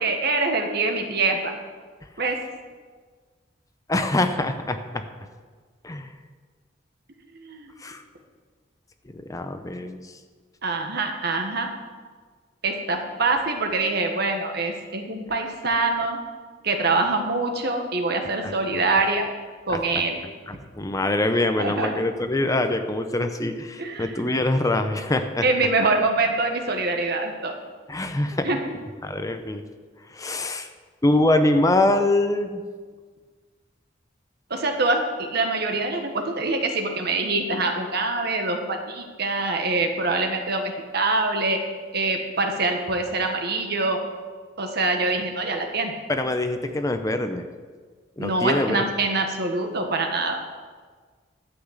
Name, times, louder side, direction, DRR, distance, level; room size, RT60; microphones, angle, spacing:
voice 1, 0.0-1.5 2.2-2.4 7.3-7.7 10.6-11.7 12.6-16.2 16.6-19.3 19.7-20.2 21.6-22.0 23.8-24.3 25.4-27.5 28.4-28.6 34.5-41.6 41.9-44.0 44.6-45.9 48.2-50.4, right 3 dB, 60° right, 4 dB, 1.5 m, -24 dB
voice 2, 3.9-5.0 5.8-6.1 7.8-8.0 9.1-10.0 18.4-18.5 19.7-19.8 20.5-25.4 27.9-28.5 29.0-29.6 30.1-30.7 31.0-32.6 46.1-47.5 48.2-48.8, left 2 dB, 20° left, 7 dB, 0.6 m, -24 dB
12.0 x 6.0 x 8.1 m, 1.5 s
head